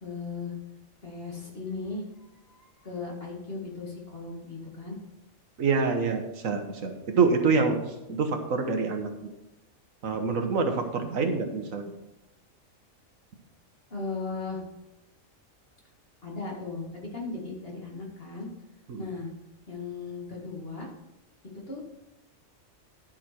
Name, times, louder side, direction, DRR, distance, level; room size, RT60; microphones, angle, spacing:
voice 1, 0.0-0.5 1.0-2.0 2.4-5.0 13.9-14.6 16.2-18.5 19.0-19.3 19.7-20.9 21.5-21.8, left 3 dB, 45° left, -2 dB, 2.3 m, -37 dB
voice 2, 5.6-9.3 10.0-11.9 18.9-19.0, right 4 dB, 80° right, 5 dB, 1.5 m, -26 dB
11.0 x 5.8 x 4.4 m, 0.93 s
omnidirectional pair, 1.4 m